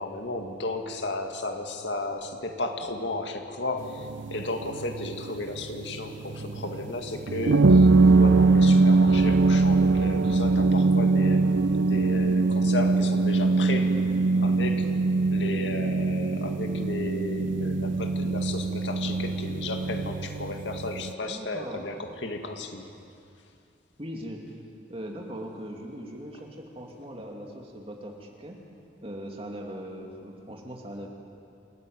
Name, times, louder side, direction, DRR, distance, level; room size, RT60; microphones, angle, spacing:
voice 1, 0.0-7.9 8.2-14.0 14.3-14.9 15.3-22.8, left 2 dB, 75° left, 4 dB, 2.2 m, -34 dB
sound 1, 3.8-21.1, right 3 dB, 85° right, 0.6 m, -22 dB
voice 2, 6.4-6.7 21.2-21.9 24.0-24.4 24.9-28.6 29.0-31.1, equal, 30° right, 1 dB, 2.7 m, -40 dB
28.5 x 14.0 x 9.1 m, 2.5 s
head